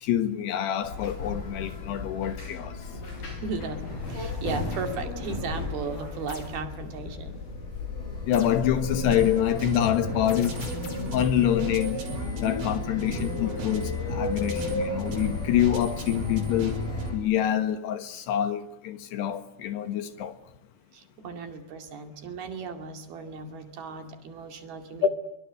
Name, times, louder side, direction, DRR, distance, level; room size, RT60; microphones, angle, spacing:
voice 1, 0.0-2.8 8.3-10.6 11.1-12.0 12.4-16.8 17.1-20.4 25.0-25.1, left 10 dB, 70° left, 3.2 m, -26 dB
sound 1, 0.8-17.1, left 3 dB, 55° left, 8.5 m, -34 dB
voice 2, 3.4-7.4 20.9-25.1, right 5 dB, 60° right, 4.0 m, -36 dB
sound 2, 6.3-6.6 8.3-8.7 10.3-11.2, left 4 dB, 35° left, 4.5 m, -44 dB
sound 3, 9.1-17.1, right 3 dB, 85° right, 6.1 m, -38 dB
25.5 x 24.5 x 9.3 m
omnidirectional pair, 5.4 m